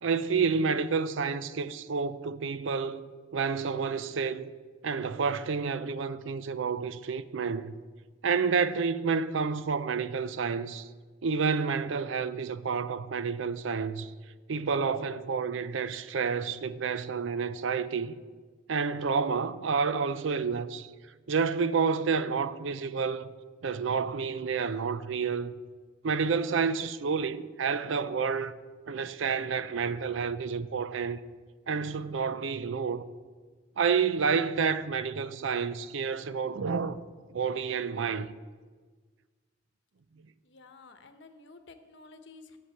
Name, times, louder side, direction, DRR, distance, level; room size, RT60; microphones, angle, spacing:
voice 1, 0.0-4.5 4.8-7.7 8.2-10.9 11.2-14.1 14.5-18.1 18.7-20.9 21.3-23.3 23.6-25.5 26.0-28.5 28.9-31.2 31.7-33.1 33.8-37.0 37.3-38.3, right 5 dB, 80° right, 0.5 m, -29 dB
voice 2, 40.4-42.6, left 3 dB, 65° left, 0.9 m, -52 dB
8.2 x 7.5 x 8.3 m
head